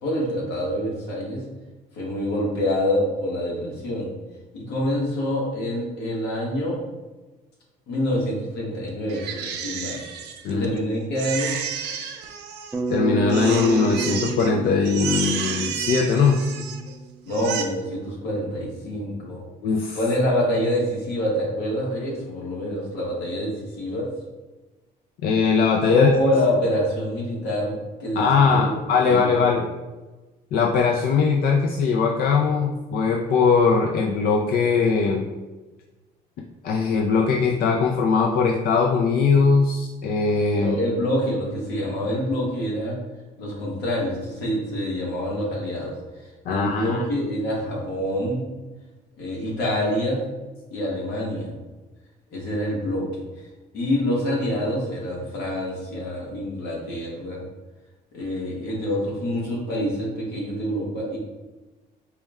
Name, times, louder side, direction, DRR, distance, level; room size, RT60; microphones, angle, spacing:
voice 1, 0.0-1.4 2.0-4.1 4.5-6.8 7.9-10.0 10.5-11.5 17.2-19.4 19.9-24.0 25.8-28.7 29.1-29.6 40.5-43.0 43.4-45.9 46.5-48.5 49.2-50.2 50.7-51.5 52.3-53.5 53.7-57.4 58.1-61.2, equal, 80° left, -3 dB, 1.3 m, -26 dB
Crying sobbing, 9.1-10.8 11.2-13.0 13.3-14.5 14.8-16.9 17.3-17.6, right 7 dB, 80° right, 0.5 m, -31 dB
Bass guitar, 12.7-17.1, right 3 dB, 10° right, 0.4 m, -30 dB
voice 2, 12.9-16.4 19.6-20.0 25.2-26.1 28.2-29.7 30.5-35.3 36.6-40.8 46.5-47.0, left 5 dB, 60° left, 1 dB, 0.4 m, -20 dB
4.4 x 2.1 x 3.5 m, 1.2 s
cardioid pair, 110°, 17 cm